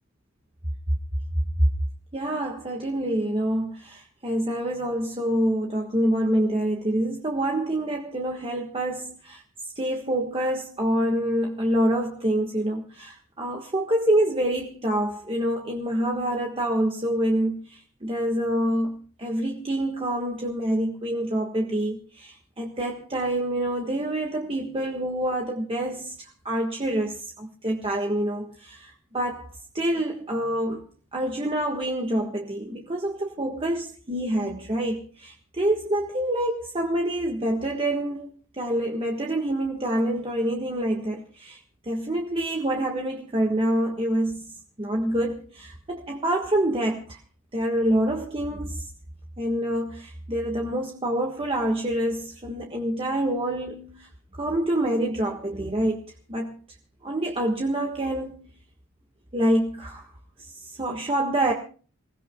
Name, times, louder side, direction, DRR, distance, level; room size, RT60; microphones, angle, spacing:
voice 1, 2.1-9.4 9.7-30.8 31.1-44.5 44.8-47.2 47.5-48.9 49.4-54.1 54.4-56.0 56.3-56.5 57.0-58.4 59.3-60.1 60.4-61.5, right 1 dB, 25° right, 1.5 m, -26 dB
28.5 x 16.5 x 2.3 m
head